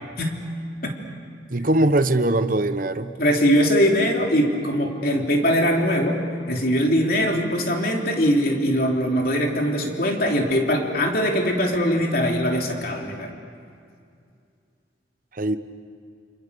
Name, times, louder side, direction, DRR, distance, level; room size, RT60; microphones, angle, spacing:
voice 1, 1.5-3.2 15.4-15.6, right 1 dB, 50° right, 10 dB, 1.0 m, -21 dB
voice 2, 3.2-6.2 6.5-13.3, equal, 55° left, 1 dB, 3.4 m, -21 dB
28.5 x 27.5 x 6.9 m, 2.4 s
head